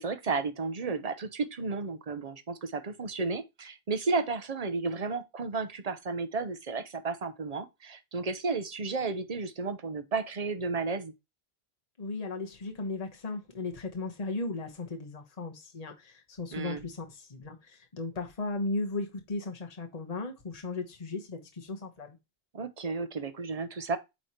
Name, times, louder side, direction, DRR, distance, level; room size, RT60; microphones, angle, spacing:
voice 1, 0.0-11.1 16.5-16.8 22.5-24.0, right 4 dB, 40° right, 0.8 m, -33 dB
voice 2, 12.0-22.2, left 3 dB, 40° left, 1.2 m, -36 dB
8.8 x 3.2 x 4.3 m
omnidirectional pair, 1.0 m